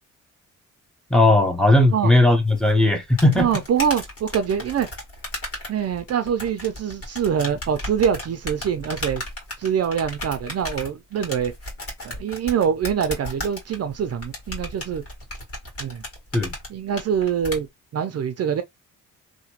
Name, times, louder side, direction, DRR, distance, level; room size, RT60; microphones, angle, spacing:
voice 1, 1.1-3.5 16.3-16.5, left 2 dB, ahead, 0.7 m, -17 dB
sound 1, 2.6-17.6, left 1 dB, 45° left, 1.8 m, -35 dB
voice 2, 3.4-4.9 5.7-9.2 9.6-11.5 12.0-15.0 15.8-16.0 16.7-17.7 17.9-18.6, right 8 dB, 50° right, 0.5 m, -24 dB
2.9 x 2.2 x 2.8 m
cardioid pair, 95°, 32 cm